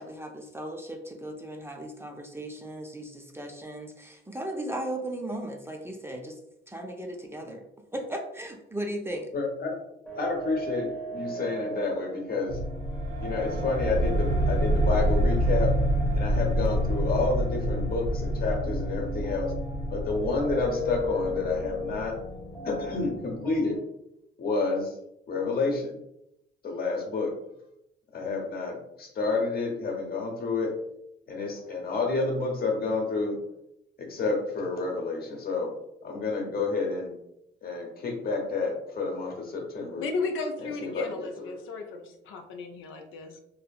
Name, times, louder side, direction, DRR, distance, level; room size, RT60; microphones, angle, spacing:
voice 1, 0.0-6.4 6.7-7.6 7.9-9.3, right 1 dB, 10° right, 2 dB, 0.4 m, -36 dB
voice 2, 9.3-9.7 10.1-12.6 13.2-15.7 16.1-19.5 19.9-22.1 22.6-23.8 24.4-25.0 25.3-25.9 26.6-27.3 28.1-30.7 31.3-33.4 34.0-35.7 36.0-37.1 37.6-40.0 40.6-41.5, left 3 dB, 50° left, 1 dB, 0.8 m, -29 dB
sound 1, 10.1-23.8, left 1 dB, 10° left, 0.8 m, -38 dB
sound 2, 12.5-22.7, right 1 dB, 85° right, 0.6 m, -27 dB
voice 3, 40.0-43.4, left 3 dB, 85° left, 4 dB, 0.4 m, -34 dB
2.8 x 2.5 x 2.3 m, 0.82 s
cardioid pair, 90°, 20 cm